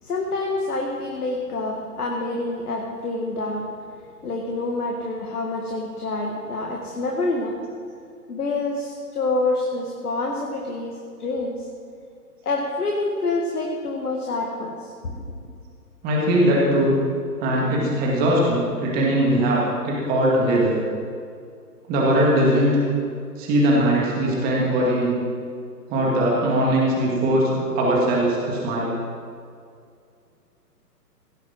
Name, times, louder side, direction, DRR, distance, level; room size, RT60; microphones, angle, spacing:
voice 1, 0.0-3.7 4.2-7.6 8.3-11.7 12.4-15.5, left 2 dB, 65° left, 0 dB, 1.9 m, -27 dB
voice 2, 16.0-16.9 17.4-20.8 21.9-22.8 23.4-25.2 25.9-28.9, right 1 dB, 20° right, -4 dB, 2.2 m, -20 dB
17.0 x 7.7 x 6.1 m, 2.3 s
figure-of-eight pair, 135°, 49 cm